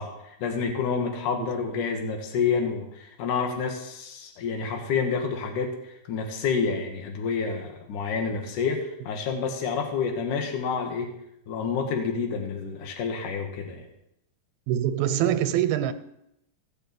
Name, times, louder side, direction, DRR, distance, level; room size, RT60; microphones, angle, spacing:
voice 1, 0.0-11.1 11.5-13.9, left 5 dB, 60° left, 3.2 m, -29 dB
voice 2, 14.7-15.9, right 11 dB, 85° right, 2.7 m, -24 dB
17.0 x 6.8 x 7.9 m
omnidirectional pair, 4.2 m